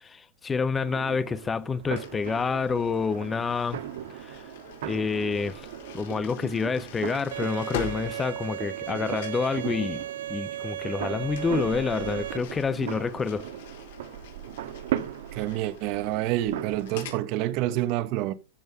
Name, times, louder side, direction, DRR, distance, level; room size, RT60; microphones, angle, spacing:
voice 1, 0.0-3.8 4.3-4.4 4.8-5.6 5.9-13.5, left 5 dB, 15° left, 0.7 m, -28 dB
sound 1, 0.8-17.2, right 11 dB, 70° right, 1.6 m, -38 dB
sound 2, 2.0-8.9 9.2-9.5 11.3-17.2, left 9 dB, 65° left, 4.5 m, -44 dB
Bowed string instrument, 7.3-12.4, right 12 dB, 90° right, 0.6 m, -35 dB
voice 2, 15.3-18.3, right 14 dB, 40° right, 1.1 m, -28 dB
14.0 x 6.2 x 5.2 m
supercardioid pair, 155°, 0 cm